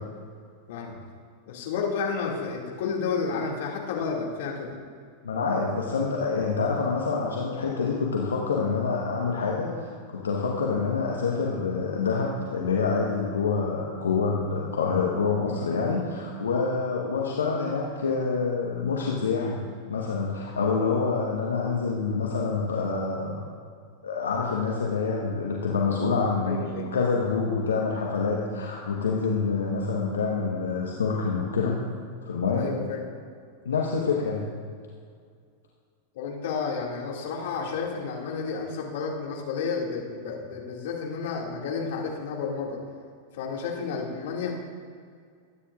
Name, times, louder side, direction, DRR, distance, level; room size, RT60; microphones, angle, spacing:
voice 1, 1.5-4.8 26.5-26.9 32.5-33.0 36.1-42.8 43.3-44.5, left 5 dB, 60° left, -2 dB, 2.3 m, -31 dB
voice 2, 5.2-19.6 19.9-23.5 24.0-31.8 32.2-32.7 33.6-34.5, left 4 dB, 75° left, -2 dB, 1.3 m, -27 dB
22.5 x 9.8 x 2.5 m, 2.2 s
figure-of-eight pair, 90°, 0 cm